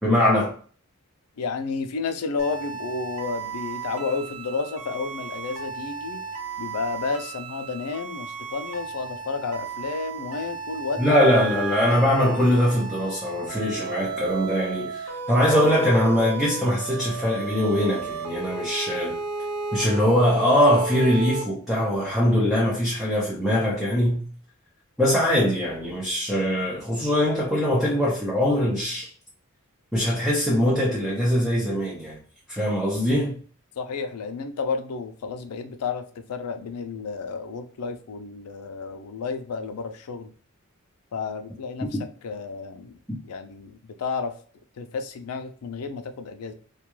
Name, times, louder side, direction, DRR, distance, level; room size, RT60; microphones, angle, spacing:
voice 1, 0.0-0.5 11.0-19.2 19.7-24.3 25.0-29.1 29.9-32.2 32.5-33.4 41.9-42.0 43.1-43.2, equal, ahead, 0.5 m, -22 dB
voice 2, 1.4-6.2 6.6-11.0 33.8-40.3 41.1-43.0 43.2-44.3 44.8-46.5, left 4 dB, 90° left, 0.4 m, -31 dB
sound 1, 2.4-21.4, right 4 dB, 75° right, 0.6 m, -34 dB
2.3 x 2.2 x 3.0 m
head